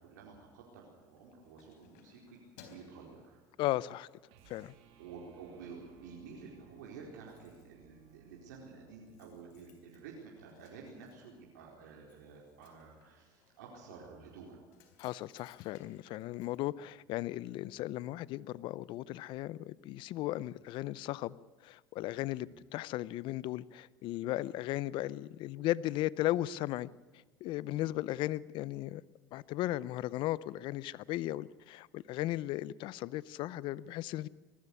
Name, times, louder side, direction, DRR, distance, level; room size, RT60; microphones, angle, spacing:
voice 1, 0.0-3.4 5.0-14.7 20.4-20.5 22.4-22.6 24.5-24.6 27.7-27.9, right 5 dB, 85° right, 4.5 m, -51 dB
Keys jangling, 1.0-4.0 4.5-4.7 5.1-5.8 6.0-6.1 6.4-6.5 6.7-17.5 17.8-17.9, left 6 dB, 80° left, 4.0 m, -64 dB
voice 2, 3.6-4.1 4.5-4.7 15.0-21.3 21.6-26.9 27.4-29.0 29.3-34.3, left 15 dB, 60° left, 0.6 m, -36 dB
sound 1, 4.3-10.7, right 7 dB, 70° right, 2.8 m, -62 dB
20.5 x 14.0 x 9.7 m
supercardioid pair, 100°, 9 cm